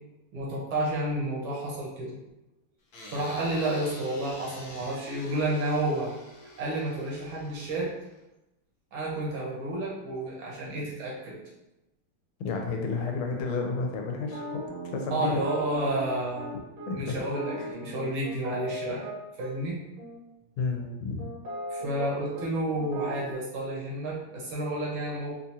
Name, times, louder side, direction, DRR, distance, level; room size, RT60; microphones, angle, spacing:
voice 1, 0.3-2.2 3.1-6.1 6.6-7.9 8.9-11.4 15.1-16.5 16.9-19.1 19.4-19.8 21.7-25.3, right 1 dB, 75° right, -4 dB, 1.7 m, -30 dB
sound 1, 2.9-8.2, left 1 dB, 60° left, 1.0 m, -46 dB
voice 2, 12.4-14.6 14.9-15.4 16.9-17.2 17.6-17.7 20.6-21.2, left 4 dB, 80° left, 2 dB, 1.5 m, -31 dB
sound 2, 14.2-19.5 20.0-20.2 20.7-22.1 22.3-22.5 22.7-23.3, right 1 dB, 55° right, 1.0 m, -38 dB
4.4 x 2.3 x 2.7 m, 0.95 s
omnidirectional pair, 2.3 m